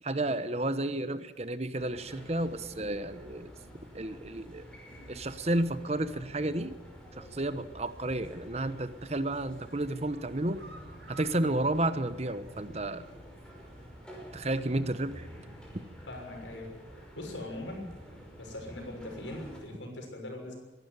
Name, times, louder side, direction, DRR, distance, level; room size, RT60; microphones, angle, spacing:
voice 1, 0.0-3.5 3.9-4.7 5.1-6.7 7.2-10.6 11.1-13.1 14.3-15.3 15.7-15.8, right 1 dB, 35° right, 12 dB, 1.0 m, -32 dB
sound 1, 1.8-19.6, equal, 5° left, 5.6 m, -49 dB
sound 2, 8.7-9.1 9.5-12.9 13.2-13.3 13.7-13.8, right 3 dB, 65° right, 2.6 m, -55 dB
voice 2, 16.1-16.7 17.1-17.9 18.3-20.6, left 1 dB, 85° left, 2 dB, 6.4 m, -41 dB
23.5 x 12.5 x 9.6 m, 1.2 s
head